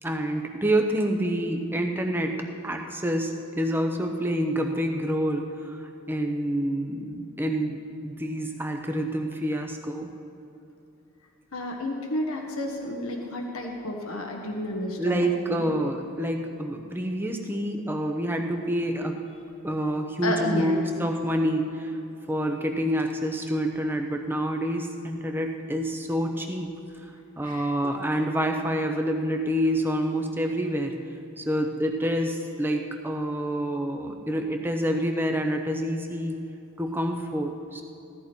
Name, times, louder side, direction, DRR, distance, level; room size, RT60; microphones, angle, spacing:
voice 1, 0.0-5.8 6.1-10.1 15.0-19.2 19.6-21.9 22.3-26.7 27.4-30.9 31.4-36.4 36.8-37.8, equal, 10° right, 3 dB, 0.9 m, -27 dB
voice 2, 11.5-15.7 20.2-20.9 27.4-27.7, left 1 dB, 80° left, 1 dB, 1.4 m, -31 dB
16.5 x 13.5 x 4.5 m, 2.8 s
head